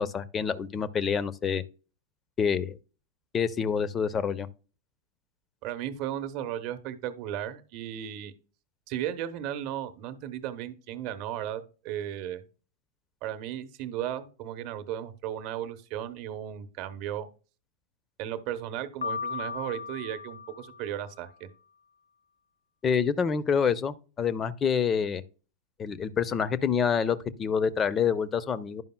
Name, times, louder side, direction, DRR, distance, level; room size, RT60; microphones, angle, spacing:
voice 1, 0.0-1.6 2.4-2.8 3.3-4.5 22.8-25.2 25.8-28.8, left 6 dB, 25° left, 0.6 m, -27 dB
voice 2, 5.6-8.3 8.9-12.4 13.2-17.3 18.2-21.5, right 11 dB, 45° right, 0.9 m, -35 dB
Piano, 19.0-21.2, left 5 dB, 75° left, 0.3 m, -36 dB
11.0 x 5.3 x 2.2 m
figure-of-eight pair, 90°, 0 cm